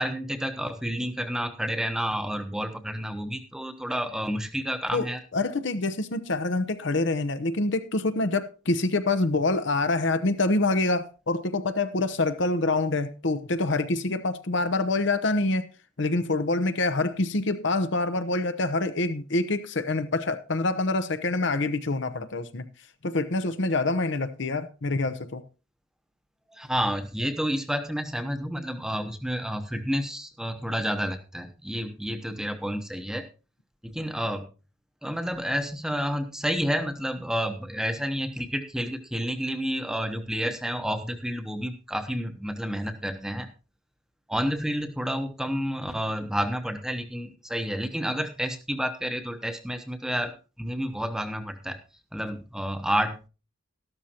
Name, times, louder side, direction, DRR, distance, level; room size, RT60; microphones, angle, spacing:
voice 1, 0.0-5.2 26.5-33.2 33.8-34.4 35.0-43.5 44.3-51.8 52.1-53.3, equal, 5° right, 0.9 m, -30 dB
voice 2, 4.9-15.7 16.0-22.7 23.0-25.4, left 2 dB, 60° left, 0.8 m, -26 dB
13.0 x 12.5 x 2.9 m
head